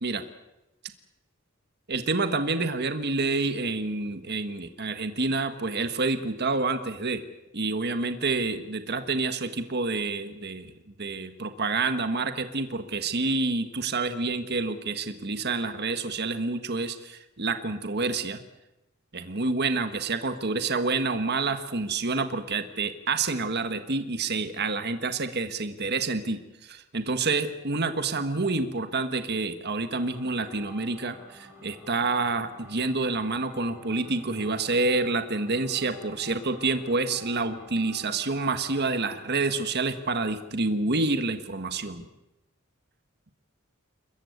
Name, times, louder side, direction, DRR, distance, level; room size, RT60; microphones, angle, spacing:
voice 1, 1.9-7.2 7.5-10.7 11.0-18.4 19.1-42.0, right 3 dB, 50° right, 9 dB, 1.5 m, -28 dB
sound 1, 30.0-39.8, left 1 dB, 10° right, 5.1 m, -51 dB
28.5 x 14.5 x 9.5 m, 0.99 s
head